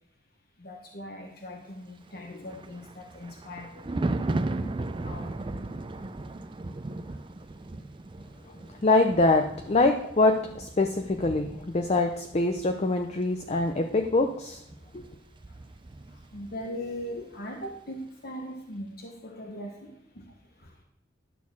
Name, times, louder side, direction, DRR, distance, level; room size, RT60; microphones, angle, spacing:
voice 1, 0.6-3.9 5.0-5.4 7.1-7.2 8.4-8.5 14.8-14.9 16.1-20.7, left 1 dB, 55° left, 1 dB, 1.2 m, -40 dB
Thunder, 2.1-16.7 16.9-17.2, right 2 dB, 25° right, 0.4 m, -37 dB
voice 2, 8.8-14.6 14.9-15.0, left 2 dB, 35° left, 4 dB, 0.6 m, -24 dB
11.5 x 4.3 x 7.1 m, 0.76 s
head